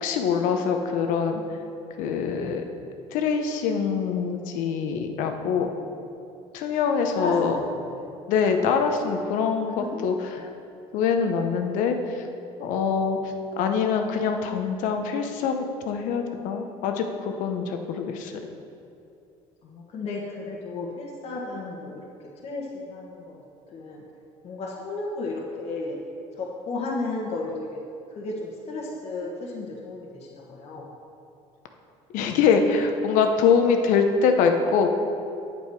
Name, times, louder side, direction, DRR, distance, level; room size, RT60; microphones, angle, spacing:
voice 1, 0.0-1.4 2.0-2.6 3.1-5.7 6.5-7.5 8.3-10.4 10.9-11.9 12.6-13.2 13.6-18.3 32.1-34.9, left 6 dB, 75° left, 5 dB, 1.0 m, -24 dB
voice 2, 7.2-8.1 9.6-10.4 19.6-22.1 22.4-24.0 24.4-26.0 26.3-27.8 28.1-30.9, left 3 dB, 55° left, -4 dB, 1.5 m, -34 dB
8.9 x 8.5 x 4.8 m, 2.7 s
supercardioid pair, 95°, 13 cm